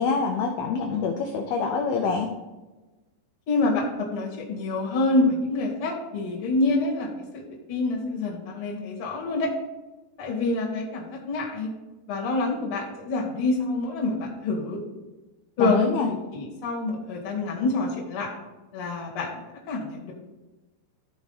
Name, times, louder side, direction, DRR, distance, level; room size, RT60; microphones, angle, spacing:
voice 1, 0.0-2.3 15.6-16.1, left 5 dB, 80° left, 2 dB, 2.2 m, -25 dB
voice 2, 3.5-9.5 10.2-11.7 12.1-14.8 15.6-15.9 16.3-18.3 18.7-19.4 19.7-20.1, left 2 dB, 45° left, -3 dB, 1.8 m, -27 dB
14.0 x 4.8 x 4.0 m, 1.1 s
omnidirectional pair, 5.3 m